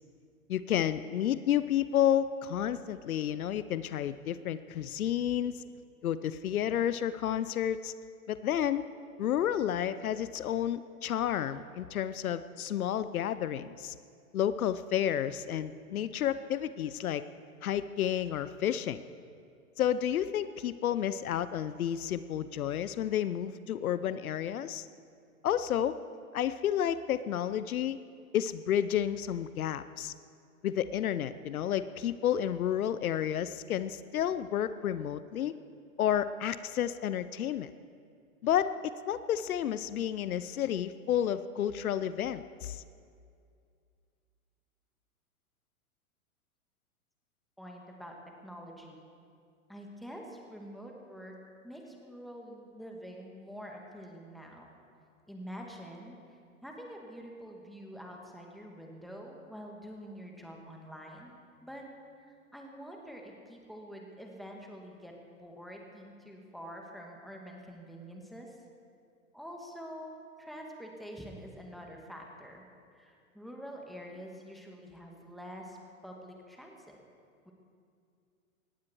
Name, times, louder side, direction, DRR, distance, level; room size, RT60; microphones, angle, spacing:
voice 1, 0.5-5.6 6.0-7.9 8.3-8.8 9.2-13.9 14.3-17.2 17.6-19.0 19.8-24.9 25.4-26.0 26.3-28.0 28.3-30.1 30.6-35.5 36.0-37.7 38.4-42.8, left 10 dB, 75° left, 14 dB, 0.7 m, -31 dB
voice 2, 47.6-48.2 48.4-49.0 49.7-51.3 51.6-54.7 55.3-56.2 56.6-61.3 61.6-61.9 62.2-68.6 69.3-72.6 72.9-75.8 76.0-77.0 77.5-77.6, equal, ahead, 0 dB, 2.3 m, -46 dB
19.0 x 15.0 x 4.7 m, 2.3 s
hypercardioid pair, 115°, 43 cm